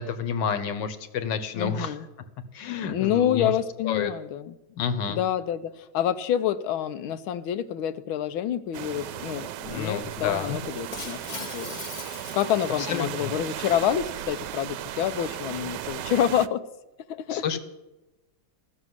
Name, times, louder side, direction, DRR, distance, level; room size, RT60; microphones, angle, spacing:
voice 1, 0.0-1.9 2.5-3.5 3.8-4.1 4.7-5.2 9.7-10.6 12.8-13.3 17.3-17.6, left 7 dB, 65° left, 11 dB, 1.7 m, -29 dB
voice 2, 1.5-2.1 2.8-4.6 5.1-16.7 17.1-17.6, left 10 dB, 85° left, 13 dB, 1.6 m, -28 dB
sound 1, 8.7-16.5, right 12 dB, 70° right, 1.1 m, -36 dB
Shatter, 10.9-13.3, left 3 dB, 35° left, 0.8 m, -40 dB
15.0 x 6.7 x 9.7 m, 1.0 s
omnidirectional pair, 2.2 m